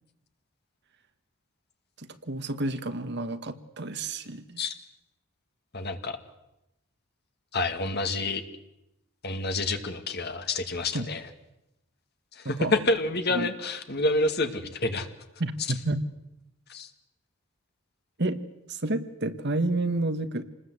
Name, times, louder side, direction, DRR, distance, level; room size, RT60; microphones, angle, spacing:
voice 1, 2.0-4.6 10.9-11.1 12.4-12.7 13.3-13.5 15.4-16.0 18.2-18.4 18.7-20.4, right 2 dB, 50° right, 10 dB, 1.5 m, -30 dB
voice 2, 5.7-6.2 7.5-8.4 9.2-11.2 12.3-15.1 16.7-16.9, left 2 dB, 45° left, 7 dB, 2.2 m, -28 dB
27.5 x 20.5 x 8.1 m, 0.90 s
head